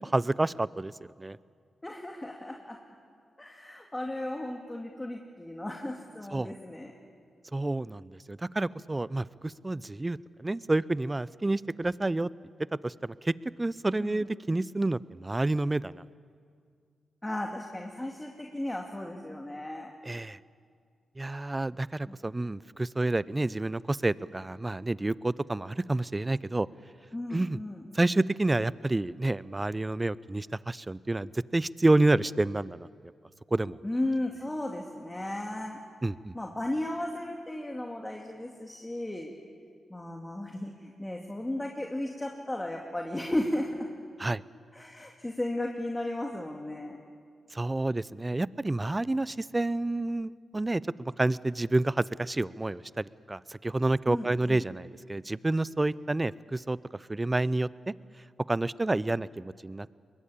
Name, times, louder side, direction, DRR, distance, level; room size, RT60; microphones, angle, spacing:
voice 1, 0.0-0.9 1.2-1.4 6.3-6.5 7.5-12.3 12.8-16.0 20.0-20.4 21.2-26.7 27.3-27.6 27.9-32.9 33.5-33.8 36.0-36.3 44.2-44.4 47.5-56.8 57.1-57.7 58.5-59.9, right 2 dB, 25° right, 19 dB, 0.6 m, -29 dB
voice 2, 1.8-2.8 3.4-6.9 14.0-14.2 17.2-19.9 22.1-22.2 27.1-27.8 33.8-35.8 36.3-39.3 39.9-43.9 44.7-47.0 54.1-54.6, left 1 dB, 20° left, 1 dB, 2.4 m, -35 dB
22.0 x 21.0 x 8.5 m, 2.2 s
supercardioid pair, 45°, 0 cm